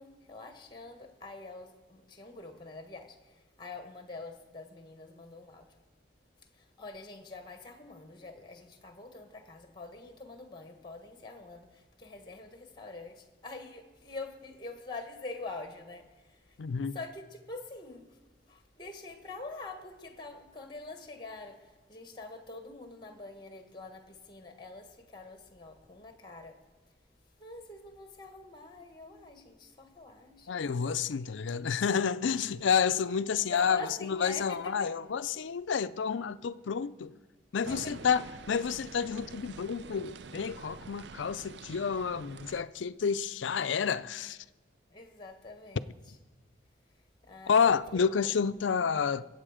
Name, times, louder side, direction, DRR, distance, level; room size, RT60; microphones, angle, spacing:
voice 1, 0.0-5.7 6.5-16.6 16.9-18.2 18.5-26.6 27.4-30.5 30.8-30.9 31.4-31.6 33.5-34.9 37.6-37.9 44.9-45.8 47.2-48.0, left 3 dB, 25° left, 1.4 m, -45 dB
voice 2, 16.6-17.0 30.5-37.1 37.5-44.4 47.5-49.3, left 6 dB, 80° left, 0.5 m, -30 dB
sound 1, 37.6-42.6, right 4 dB, 65° right, 0.5 m, -46 dB
23.5 x 8.0 x 5.0 m
head